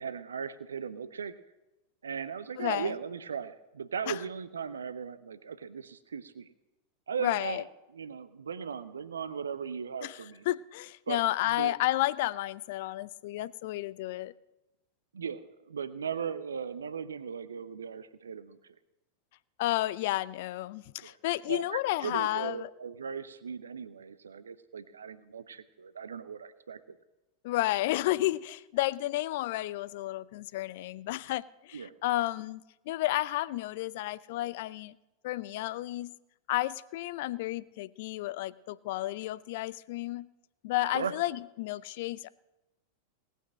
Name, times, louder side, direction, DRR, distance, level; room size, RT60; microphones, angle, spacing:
voice 1, 0.0-1.4 2.0-6.5 7.1-7.6 7.9-10.4 11.1-11.8 15.1-18.6 21.0-21.1 21.4-27.0 31.7-31.9 40.9-41.1, right 6 dB, 70° right, 0.7 m, -38 dB
voice 2, 2.6-2.9 4.1-4.2 7.2-7.6 10.0-14.3 19.6-22.7 27.4-34.9 35.2-36.1 36.5-40.3 40.6-42.3, left 16 dB, 50° left, 0.5 m, -32 dB
18.5 x 9.1 x 6.3 m
figure-of-eight pair, 90°, 0 cm